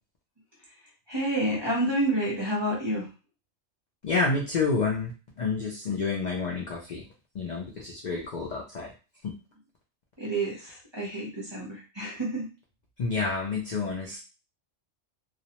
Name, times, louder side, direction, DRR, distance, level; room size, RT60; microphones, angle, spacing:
voice 1, 1.1-3.1 10.2-12.5, right 1 dB, 25° right, -4 dB, 0.7 m, -29 dB
voice 2, 4.0-5.1 5.4-7.0 7.3-8.9 9.2-9.3 13.0-14.2, left 4 dB, 65° left, -2 dB, 0.4 m, -29 dB
2.4 x 2.0 x 2.8 m, 0.32 s
omnidirectional pair, 1.3 m